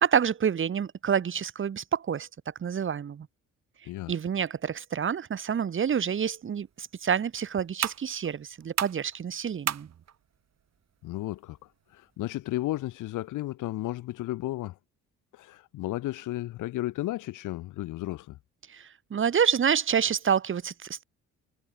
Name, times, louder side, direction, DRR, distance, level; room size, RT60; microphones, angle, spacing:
voice 1, 0.0-2.3 2.6-3.3 4.1-9.9 18.7-21.0, right 7 dB, 40° right, 1.3 m, -28 dB
voice 2, 3.8-4.2 11.0-11.6 11.9-14.7 15.3-18.4, left 16 dB, 85° left, 1.6 m, -33 dB
sound 1, 6.3-13.3, right 9 dB, 60° right, 3.0 m, -39 dB
cardioid pair, 90°, 30 cm